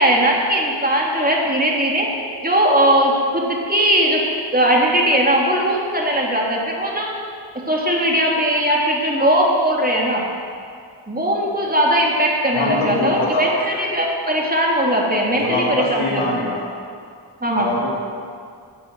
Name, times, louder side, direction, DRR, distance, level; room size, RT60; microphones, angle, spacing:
voice 1, 0.0-2.1 2.4-4.2 4.5-7.1 7.7-10.2 11.1-16.3 17.4-17.7, right 1 dB, 20° right, -2 dB, 3.3 m, -19 dB
voice 2, 12.5-13.8 15.3-16.6 17.5-17.9, left 2 dB, 85° left, -3 dB, 2.7 m, -23 dB
12.0 x 8.0 x 7.9 m, 2.2 s
supercardioid pair, 45°, 48 cm